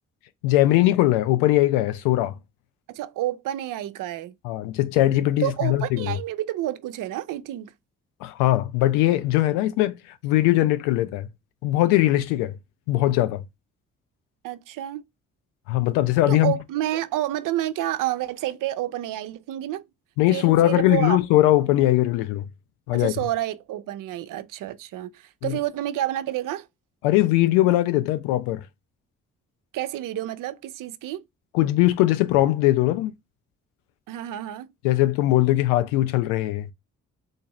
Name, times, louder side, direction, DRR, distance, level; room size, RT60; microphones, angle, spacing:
voice 1, 0.4-2.3 4.4-6.2 8.2-11.3 11.6-12.6 12.9-13.4 15.7-16.5 20.2-22.4 22.9-23.1 25.4-25.6 27.0-28.6 31.5-33.1 34.8-36.7, left 15 dB, 75° left, 0.5 m, -20 dB
voice 2, 2.9-4.3 5.4-7.7 14.4-15.0 16.3-19.8 20.3-21.2 22.9-26.7 29.7-31.2 34.1-34.7, right 13 dB, 55° right, 0.5 m, -29 dB
3.9 x 2.6 x 3.0 m
hypercardioid pair, 40°, 39 cm